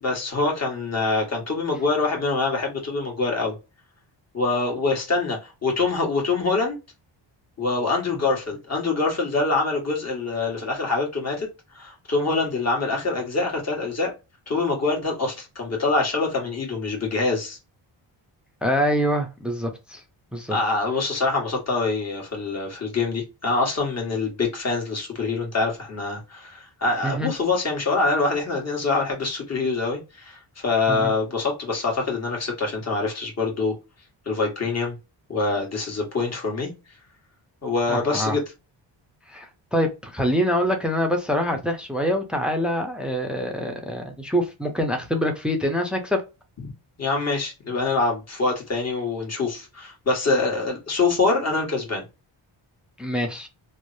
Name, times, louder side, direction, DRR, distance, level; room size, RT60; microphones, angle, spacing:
voice 1, 0.0-3.5 4.3-6.8 7.6-11.5 11.7-14.1 14.5-17.6 20.5-33.7 34.2-34.9 35.3-36.7 37.6-38.4 46.6-46.7 47.0-52.0, left 3 dB, 35° left, 1.4 m, -25 dB
voice 2, 18.6-20.0 20.3-20.6 27.0-27.3 30.9-31.1 37.9-38.4 39.3-46.2 53.0-53.5, equal, ahead, 0.6 m, -25 dB
3.1 x 2.1 x 2.6 m
cardioid pair, 95°, 47 cm